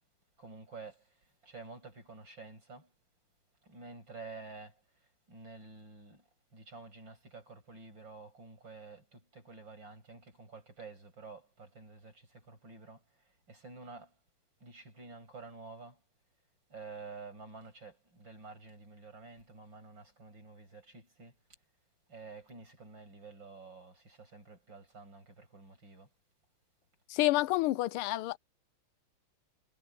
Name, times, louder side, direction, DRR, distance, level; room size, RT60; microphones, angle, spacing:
voice 1, 0.4-2.9 3.6-14.2 14.6-16.0 16.7-21.4 22.1-26.1, right 3 dB, 60° right, 8.2 m, -50 dB
voice 2, 27.1-28.4, left 18 dB, 90° left, 1.5 m, -29 dB
omnidirectional pair, 2.3 m